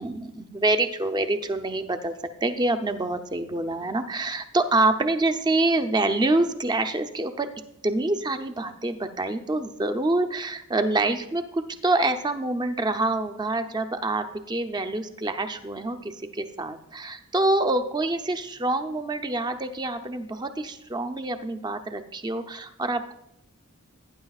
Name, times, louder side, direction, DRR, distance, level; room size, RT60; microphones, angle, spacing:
voice 1, 0.0-2.1 2.4-7.5 7.8-23.1, right 2 dB, 20° right, 8 dB, 0.6 m, -26 dB
17.5 x 9.6 x 2.4 m, 0.80 s
head